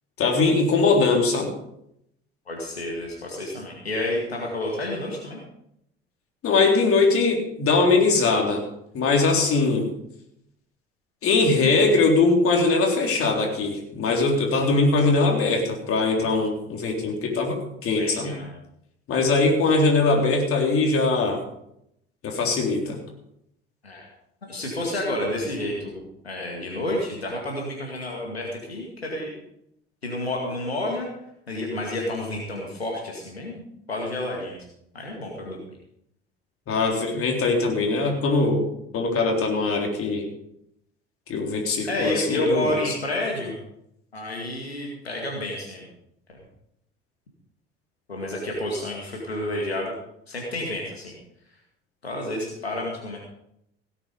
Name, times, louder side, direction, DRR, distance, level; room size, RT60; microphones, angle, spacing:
voice 1, 0.2-1.5 6.4-8.6 8.9-9.9 11.2-18.4 19.1-21.4 22.2-23.0 36.7-38.6 38.9-40.3 41.3-42.9, left 3 dB, 45° left, 1 dB, 3.7 m, -21 dB
voice 2, 2.5-5.4 18.0-18.5 23.8-24.1 24.5-29.3 30.0-31.1 31.5-34.6 34.9-35.6 41.9-43.6 44.1-45.9 48.1-49.9 50.3-51.1 52.0-53.2, left 1 dB, 90° left, -1 dB, 2.3 m, -30 dB
17.0 x 9.2 x 5.2 m, 0.76 s
figure-of-eight pair, 60°, 31 cm